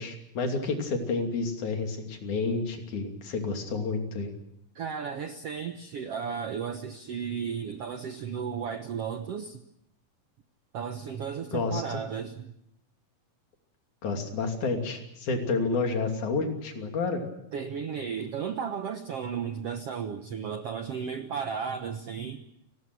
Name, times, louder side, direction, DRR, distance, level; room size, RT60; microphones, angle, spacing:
voice 1, 0.0-4.3 11.5-12.0 14.0-17.2, left 4 dB, 55° left, 4 dB, 4.1 m, -30 dB
voice 2, 4.7-9.6 10.7-12.5 17.5-22.4, right 7 dB, 80° right, 8 dB, 1.3 m, -34 dB
29.5 x 19.5 x 6.2 m, 0.76 s
omnidirectional pair, 4.3 m